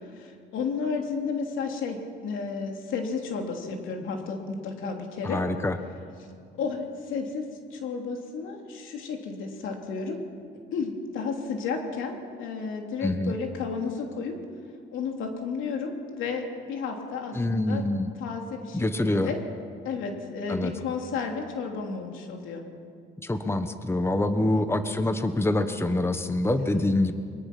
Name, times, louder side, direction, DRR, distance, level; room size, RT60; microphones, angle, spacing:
voice 1, 0.1-5.4 6.6-10.2 10.7-14.4 14.9-17.8 18.2-19.4 19.8-22.6 24.5-24.7 26.7-26.8, left 5 dB, 85° left, 2 dB, 3.0 m, -32 dB
voice 2, 5.2-5.8 13.0-13.3 17.3-18.1 18.7-19.3 20.5-20.7 23.2-27.1, left 1 dB, 10° left, 9 dB, 1.2 m, -25 dB
23.0 x 21.5 x 6.0 m, 2.3 s
cardioid pair, 90°, 20 cm